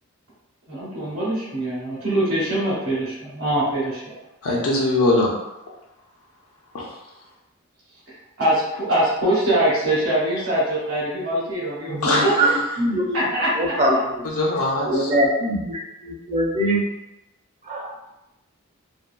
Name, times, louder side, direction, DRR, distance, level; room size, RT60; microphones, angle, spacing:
voice 1, 0.7-4.2 8.4-12.3 13.1-13.7, right 1 dB, 65° right, -9 dB, 1.0 m, -23 dB
voice 2, 4.4-5.3 6.7-6.9 12.0-12.5 14.3-15.1, left 2 dB, 75° left, -3 dB, 0.5 m, -21 dB
voice 3, 11.9-12.5 12.8-13.2 13.5-14.4 14.8-16.8 17.6-17.9, right 1 dB, 35° right, -2 dB, 0.5 m, -22 dB
2.6 x 2.5 x 2.2 m, 0.94 s
head